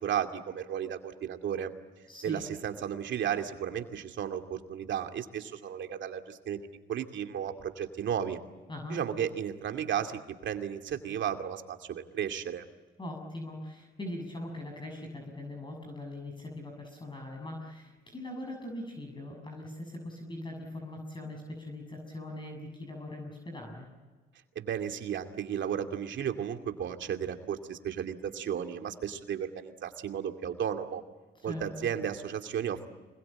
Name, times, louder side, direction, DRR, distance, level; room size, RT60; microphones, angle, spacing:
voice 1, 0.0-1.7 2.2-6.6 6.9-8.4 8.9-12.6 24.6-31.0 31.4-32.9, right 9 dB, 70° right, 5 dB, 2.5 m, -34 dB
voice 2, 2.1-2.4 8.7-9.0 13.0-23.9 31.4-31.9, left 1 dB, 25° left, 2 dB, 7.0 m, -41 dB
26.0 x 21.5 x 8.9 m, 1.3 s
cardioid pair, 90°, 20 cm